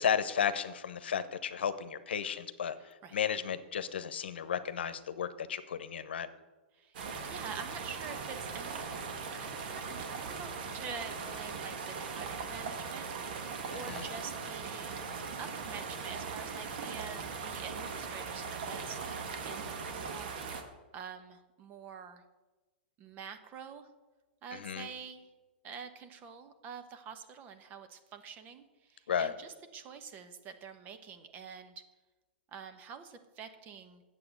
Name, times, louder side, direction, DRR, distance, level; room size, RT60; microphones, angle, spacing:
voice 1, 0.0-6.3 13.9-14.0 24.5-24.9 29.1-29.3, left 8 dB, 90° left, 12 dB, 0.9 m, -33 dB
voice 2, 2.8-3.2 6.7-7.0 7.2-8.9 9.3-15.0 15.4-20.3 20.9-22.2 23.0-23.9 24.4-25.3 25.6-31.8 32.5-34.0, right 6 dB, 30° right, 9 dB, 1.1 m, -47 dB
sound 1, 6.9-20.6, right 5 dB, 65° right, 1.8 m, -39 dB
8.7 x 7.6 x 8.2 m, 1.2 s
hypercardioid pair, 140°, 6 cm